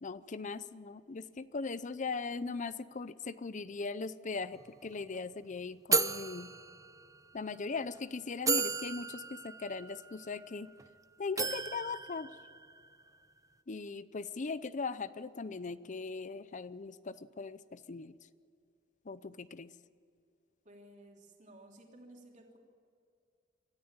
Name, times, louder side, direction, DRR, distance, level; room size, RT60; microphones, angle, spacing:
voice 1, 0.0-6.5 7.3-10.7 11.2-12.3 13.7-18.1 19.1-19.7, left 4 dB, 40° left, 15 dB, 0.6 m, -39 dB
sound 1, 4.6-4.7 4.9-5.2 5.9-7.3 8.0-8.1 8.5-10.9 11.4-13.0, right 4 dB, 15° right, 0.7 m, -35 dB
voice 2, 20.6-22.6, right 1 dB, 40° right, 0 dB, 3.2 m, -55 dB
23.5 x 13.5 x 8.8 m, 2.3 s
head